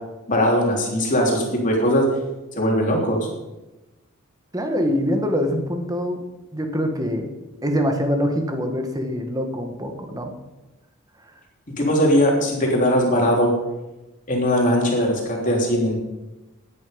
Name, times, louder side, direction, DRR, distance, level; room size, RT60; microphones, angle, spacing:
voice 1, 0.3-2.1 2.5-3.3 11.8-13.5 14.3-16.0, equal, 35° left, -1 dB, 3.5 m, -20 dB
voice 2, 4.5-6.3 6.5-7.3 7.6-10.3, equal, 15° right, 4 dB, 1.7 m, -24 dB
15.5 x 9.9 x 5.4 m, 1.0 s
head